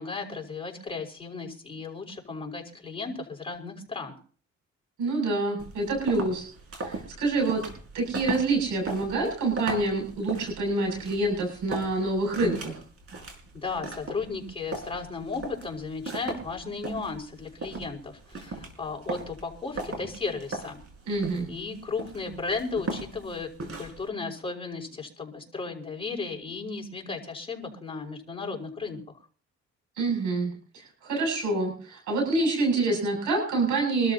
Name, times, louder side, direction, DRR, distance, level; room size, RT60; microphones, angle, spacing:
voice 1, 0.0-4.2 13.5-20.8 21.5-23.5 23.8-29.0, left 4 dB, 20° left, 0 dB, 5.6 m, -35 dB
voice 2, 5.0-6.5 6.7-7.6 7.9-12.8 21.1-21.5 30.0-34.1, right 2 dB, 85° right, 1 dB, 7.7 m, -27 dB
sound 1, 5.6-24.1, right 2 dB, 50° right, 5.1 m, -39 dB
25.5 x 13.0 x 2.9 m, 0.42 s
cardioid pair, 90°, 30 cm